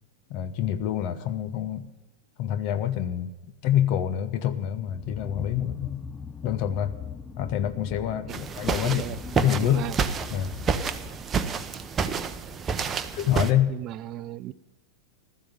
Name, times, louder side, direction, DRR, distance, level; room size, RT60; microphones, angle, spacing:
voice 1, 0.3-1.9 2.4-3.3 3.6-6.0 6.4-6.9 7.4-9.9 10.3-10.5 13.1-13.7, left 11 dB, 45° left, 11 dB, 1.1 m, -26 dB
sound 1, 4.8-11.3, left 6 dB, 15° left, 0.6 m, -41 dB
sound 2, 8.3-13.5, right 5 dB, 20° right, 0.9 m, -29 dB
voice 2, 8.8-9.2 9.6-10.0 12.8-13.1 13.7-14.5, right 14 dB, 35° right, 17 dB, 0.5 m, -36 dB
15.5 x 13.0 x 5.3 m, 1.0 s
figure-of-eight pair, 90°, 0 cm